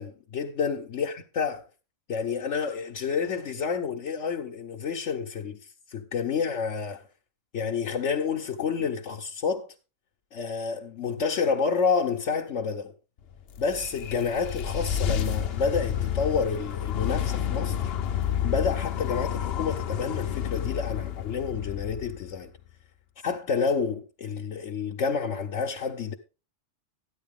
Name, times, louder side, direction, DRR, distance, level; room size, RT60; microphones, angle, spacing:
voice 1, 0.0-1.6 2.1-5.6 5.9-7.0 7.5-9.7 10.3-12.9 13.6-17.9 18.4-22.5 23.2-26.1, left 5 dB, 75° left, 1.2 m, -29 dB
sound 1, 13.3-22.6, left 9 dB, 60° left, 0.9 m, -30 dB
13.0 x 10.0 x 3.6 m
omnidirectional pair, 1.2 m